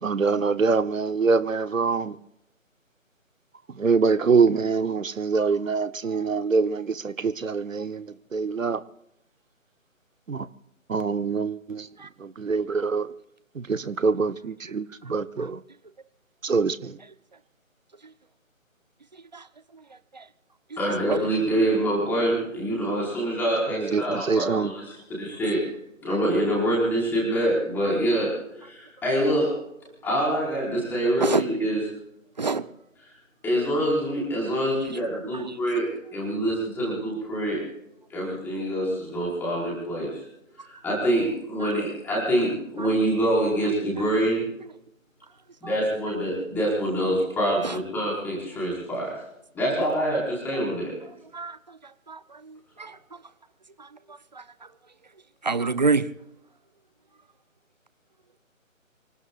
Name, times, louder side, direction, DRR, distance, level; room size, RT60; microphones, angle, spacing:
voice 1, 0.0-2.2 3.8-8.8 10.3-10.5 10.9-11.9 12.2-13.1 13.6-15.6 16.4-17.0 23.7-24.7, right 4 dB, 70° right, 1.1 m, -24 dB
voice 2, 20.8-25.6 26.0-29.5 30.0-31.9 33.4-35.9 36.1-37.6 38.1-40.2 40.6-44.5 45.6-49.1 49.5-50.9, right 1 dB, 5° left, 4.8 m, -25 dB
voice 3, 55.4-56.1, right 4 dB, 35° right, 0.7 m, -23 dB
29.5 x 18.0 x 2.5 m
figure-of-eight pair, 155°, 40 cm